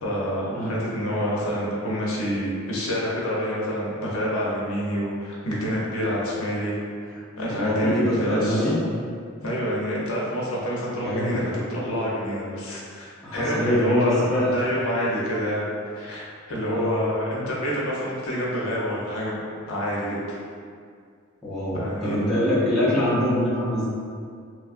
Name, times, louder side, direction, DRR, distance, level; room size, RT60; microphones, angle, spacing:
voice 1, 0.0-6.7 7.0-8.7 9.4-19.4 19.6-20.4 21.7-22.3, equal, 70° left, -5 dB, 0.7 m, -27 dB
voice 2, 7.5-8.8 11.0-11.4 13.2-14.5 16.7-17.0 21.4-23.9, left 1 dB, ahead, -12 dB, 0.6 m, -24 dB
3.1 x 2.2 x 2.5 m, 2.2 s
head